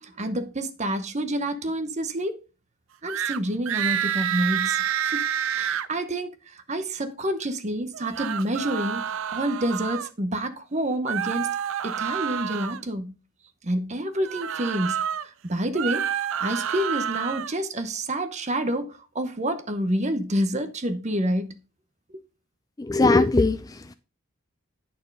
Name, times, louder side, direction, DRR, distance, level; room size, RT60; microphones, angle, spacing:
voice 1, 0.0-2.4 3.0-5.3 5.5-11.5 11.8-13.2 13.6-16.1 16.4-21.5, right 1 dB, 30° right, 0.8 m, -28 dB
sound 1, 3.1-3.4 3.7-5.9 7.9-10.1 11.1-12.8 14.2-15.3 15.7-17.5, right 9 dB, 65° right, 0.5 m, -28 dB
voice 2, 22.8-23.9, left 3 dB, 15° left, 0.3 m, -21 dB
9.4 x 4.3 x 5.3 m
head